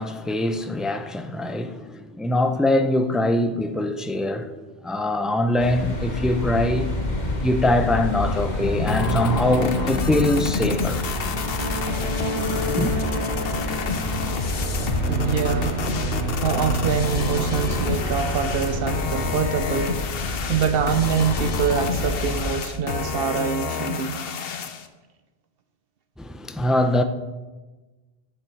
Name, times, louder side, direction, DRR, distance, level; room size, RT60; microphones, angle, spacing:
voice 1, 0.0-6.9 7.4-11.1 12.8-12.9 26.2-27.0, left 1 dB, ahead, 0.4 m, -23 dB
sound 1, 5.6-22.5, left 2 dB, 45° left, 1.6 m, -29 dB
sound 2, 7.9-20.3, right 2 dB, 30° right, 2.4 m, -31 dB
sound 3, 8.9-24.9, left 6 dB, 70° left, 1.0 m, -29 dB
voice 2, 15.1-15.9 16.4-24.2, right 7 dB, 70° right, 0.8 m, -25 dB
10.5 x 9.2 x 4.5 m
omnidirectional pair, 1.0 m